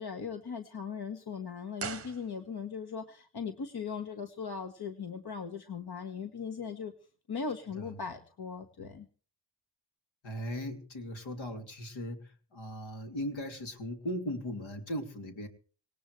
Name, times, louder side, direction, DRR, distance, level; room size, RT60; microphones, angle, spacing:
voice 1, 0.0-6.9 7.3-9.1, left 6 dB, 50° left, 6 dB, 1.8 m, -39 dB
sound 1, 1.7-2.9 3.1-3.2, right 6 dB, 30° right, 0.9 m, -42 dB
voice 2, 10.2-15.5, equal, 70° left, 5 dB, 3.2 m, -38 dB
19.5 x 18.0 x 3.4 m, 0.41 s
cardioid pair, 75°, 49 cm